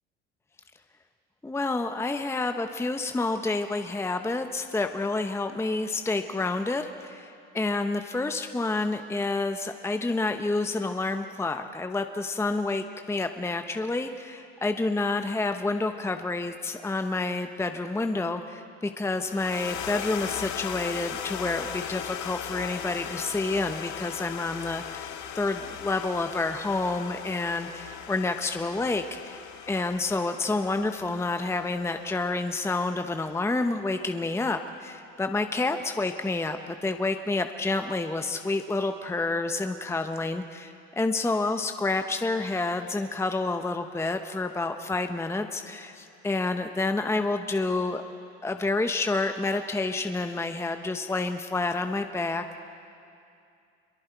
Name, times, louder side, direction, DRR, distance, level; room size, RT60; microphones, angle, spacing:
voice 1, 1.4-29.4 29.7-48.0 48.4-52.6, left 3 dB, 10° left, 7 dB, 0.8 m, -29 dB
sound 1, 19.2-33.6, left 10 dB, 60° left, 1.3 m, -38 dB
25.0 x 22.5 x 4.6 m, 2.5 s
hypercardioid pair, 80°, 33 cm